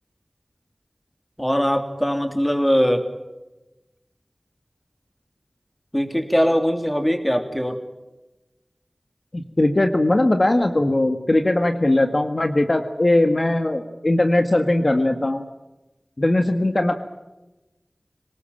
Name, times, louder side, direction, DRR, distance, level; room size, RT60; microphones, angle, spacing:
voice 1, 1.4-3.1 5.9-7.8, equal, 10° left, 6 dB, 3.2 m, -21 dB
voice 2, 9.3-15.4 16.2-16.9, left 1 dB, 45° left, 6 dB, 1.8 m, -19 dB
26.0 x 19.0 x 8.8 m, 1.0 s
wide cardioid pair, 60°, 0 cm